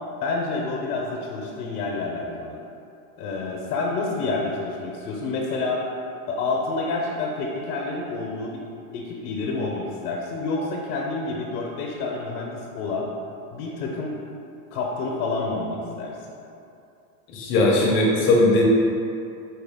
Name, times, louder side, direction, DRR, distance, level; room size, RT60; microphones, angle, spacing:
voice 1, 0.2-2.6 3.2-5.8 6.3-8.6 8.9-13.1 13.5-14.2 14.7-16.2, left 3 dB, 75° left, -2 dB, 0.7 m, -28 dB
voice 2, 17.3-18.6, left 2 dB, 30° left, -3 dB, 0.5 m, -19 dB
4.3 x 2.3 x 3.4 m, 2.6 s
supercardioid pair, 145°, 45 cm